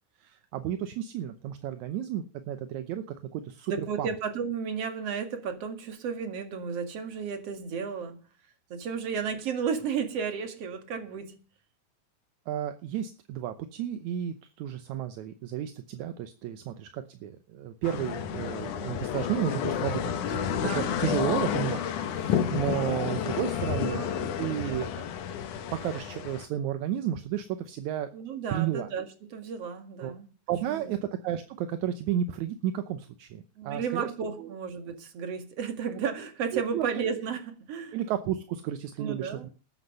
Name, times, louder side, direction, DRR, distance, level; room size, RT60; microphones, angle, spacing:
voice 1, 0.2-4.1 12.5-25.0 25.7-28.1 28.5-28.9 30.0-30.1 30.5-34.1 34.4-34.5 36.5-36.9 37.9-39.5, right 10 dB, 75° right, 2.1 m, -32 dB
voice 2, 3.7-8.2 8.7-11.4 20.6-21.0 22.7-22.9 23.8-24.1 24.4-24.8 28.1-30.3 30.7-30.9 33.6-38.0 39.0-39.5, right 6 dB, 55° right, 2.9 m, -33 dB
sound 1, 17.8-26.5, left 8 dB, 75° left, 2.7 m, -30 dB
13.0 x 9.8 x 6.7 m
omnidirectional pair, 3.6 m